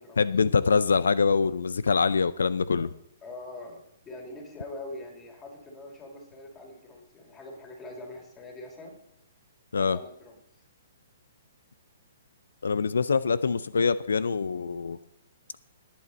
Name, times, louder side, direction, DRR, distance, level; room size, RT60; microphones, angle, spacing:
voice 1, 0.2-2.9 9.7-10.0 12.6-15.0, left 5 dB, 90° left, 17 dB, 0.4 m, -24 dB
voice 2, 3.2-8.9 9.7-10.4, left 2 dB, 20° left, 1 dB, 3.5 m, -43 dB
19.0 x 8.5 x 4.2 m, 0.77 s
hypercardioid pair, 145°, 0 cm